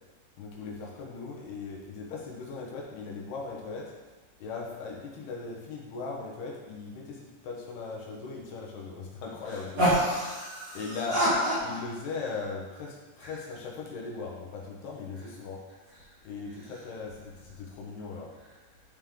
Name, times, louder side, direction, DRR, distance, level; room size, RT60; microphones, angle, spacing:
voice 1, 0.4-3.9 4.4-9.9 10.7-11.2 11.6-15.6 16.2-18.3, left 4 dB, 70° left, -3 dB, 3.1 m, -39 dB
voice 2, 9.8-11.8 13.2-13.3, equal, 45° right, -9 dB, 2.4 m, -27 dB
11.5 x 5.4 x 3.8 m, 1.2 s
omnidirectional pair, 5.1 m